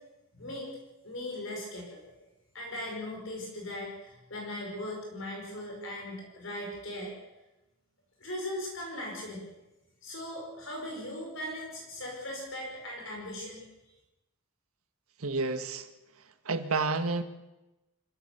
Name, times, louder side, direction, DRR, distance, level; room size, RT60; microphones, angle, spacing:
voice 1, 0.3-0.7 1.0-2.1 2.5-7.1 8.2-9.5 10.0-13.7, left 1 dB, 65° left, 0 dB, 5.5 m, -39 dB
voice 2, 15.2-15.9 16.4-17.2, right 3 dB, 90° right, 9 dB, 1.6 m, -30 dB
25.5 x 15.5 x 6.8 m, 1.0 s
head